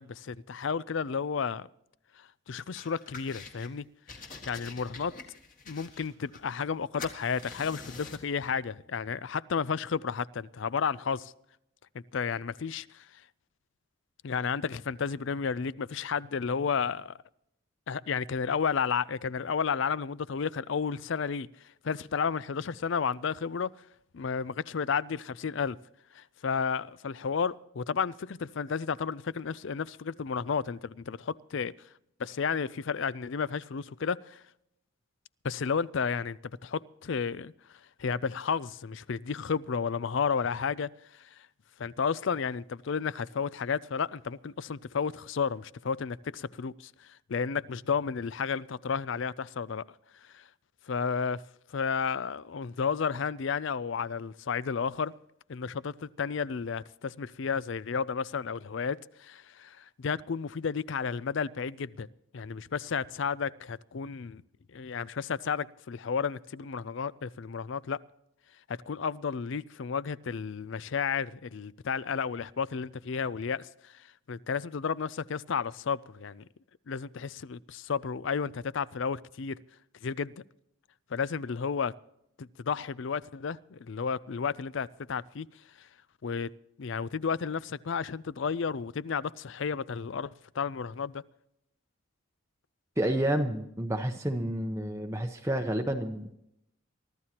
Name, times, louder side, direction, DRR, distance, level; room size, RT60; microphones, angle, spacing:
voice 1, 0.0-1.7 2.2-3.8 4.5-5.1 5.7-11.3 11.9-13.1 14.2-17.2 17.9-21.5 21.8-23.7 24.1-25.8 26.1-31.7 32.2-34.4 35.4-37.5 38.0-40.9 41.2-41.5 41.8-49.8 50.3-50.4 50.9-51.4 51.7-55.1 55.5-62.1 62.3-64.4 64.7-68.0 68.7-76.5 76.9-79.6 80.0-80.4 81.1-81.9 82.4-85.5 85.8-85.9 86.2-86.5 86.8-91.2, left 6 dB, 60° left, 20 dB, 0.4 m, -32 dB
sound 1, 2.8-3.7 4.1-6.7 7.0-8.3, left 4 dB, 40° left, 1.9 m, -46 dB
voice 2, 93.0-96.3, right 1 dB, 15° right, 4 dB, 0.8 m, -30 dB
23.5 x 14.0 x 2.9 m, 0.80 s
head